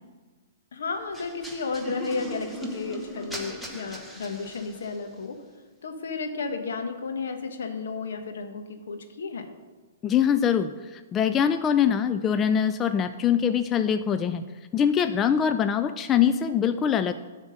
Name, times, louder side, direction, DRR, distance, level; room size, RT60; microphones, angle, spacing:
voice 1, 0.7-5.4 5.8-9.5, left 4 dB, 75° left, 5 dB, 1.2 m, -33 dB
sound 1, 1.1-5.1, right 1 dB, ahead, 1.0 m, -38 dB
voice 2, 10.0-14.4 14.7-17.1, left 8 dB, 20° left, 9 dB, 0.3 m, -23 dB
10.5 x 3.7 x 6.4 m, 1.3 s
hypercardioid pair, 130°, 0 cm